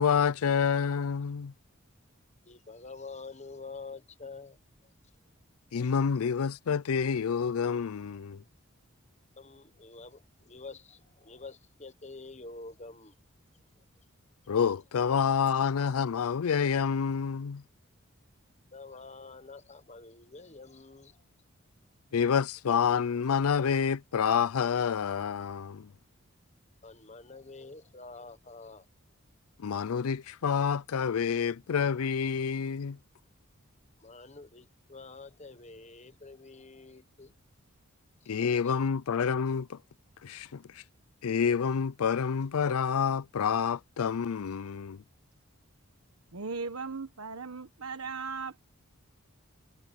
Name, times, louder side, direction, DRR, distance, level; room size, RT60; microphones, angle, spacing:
voice 1, 0.0-1.5 5.7-8.4 14.5-17.6 22.1-25.9 29.6-33.0 38.3-39.8 40.2-40.8 41.2-45.0, left 6 dB, 90° left, 0.5 m, -28 dB
voice 2, 2.5-4.6 4.8-4.9 5.8-5.9 9.4-13.2 13.5-13.6 18.7-21.2 26.8-28.9 34.0-37.3 38.2-38.5, left 3 dB, 30° left, 1.2 m, -47 dB
voice 3, 46.3-48.6, right 4 dB, 85° right, 1.3 m, -37 dB
head